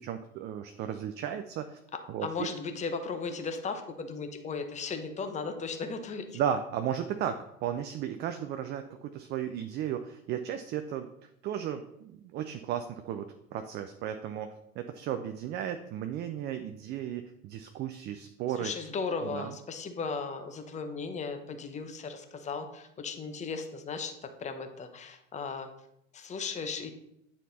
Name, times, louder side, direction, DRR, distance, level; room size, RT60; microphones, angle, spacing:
voice 1, 0.0-1.8 2.1-2.5 6.3-11.1 11.4-18.7 19.2-19.5, right 9 dB, 25° right, 7 dB, 0.4 m, -35 dB
voice 2, 2.2-6.4 18.6-25.7 26.1-26.9, left 4 dB, 15° left, 7 dB, 0.8 m, -36 dB
8.9 x 4.3 x 4.1 m, 0.78 s
figure-of-eight pair, 75°, 41 cm